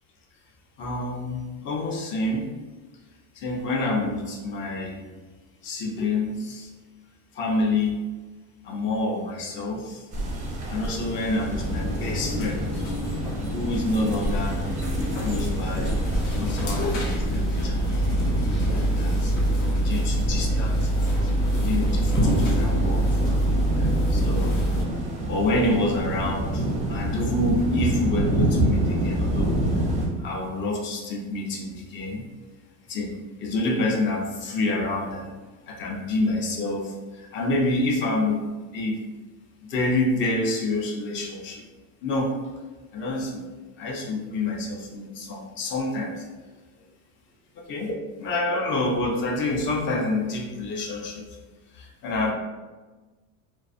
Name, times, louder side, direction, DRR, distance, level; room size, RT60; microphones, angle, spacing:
voice 1, 0.8-2.6 3.3-5.1 5.6-6.7 7.3-8.0 8.6-10.1 10.7-12.6 13.5-14.6 15.1-16.0 16.4-17.9 18.7-19.4 19.8-23.5 23.7-24.7 25.3-29.6 30.2-32.2 32.9-35.3 35.7-39.0 39.6-41.6 42.0-42.5 42.9-43.4 43.8-46.3 47.7-48.0 48.2-51.4 51.7-52.3, left 2 dB, 35° left, 0 dB, 0.5 m, -28 dB
sound 1, 10.1-30.1, right 1 dB, 20° right, 0.4 m, -28 dB
sound 2, 11.5-24.8, right 1 dB, 90° left, 0.7 m, -25 dB
2.4 x 2.2 x 2.4 m, 1.2 s
supercardioid pair, 130°, 36 cm